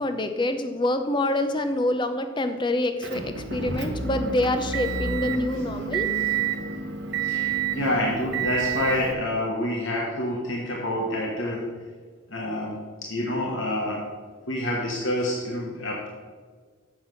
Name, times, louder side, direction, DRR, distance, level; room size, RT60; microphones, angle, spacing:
voice 1, 0.0-6.1, left 1 dB, 20° left, 8 dB, 0.6 m, -26 dB
Motor vehicle (road) / Engine, 3.0-9.1, right 7 dB, 55° right, 0.9 m, -29 dB
voice 2, 7.2-11.7 12.3-12.7 13.0-14.0 14.5-16.1, left 1 dB, 65° left, -2 dB, 1.2 m, -27 dB
7.4 x 6.0 x 6.2 m, 1.5 s
head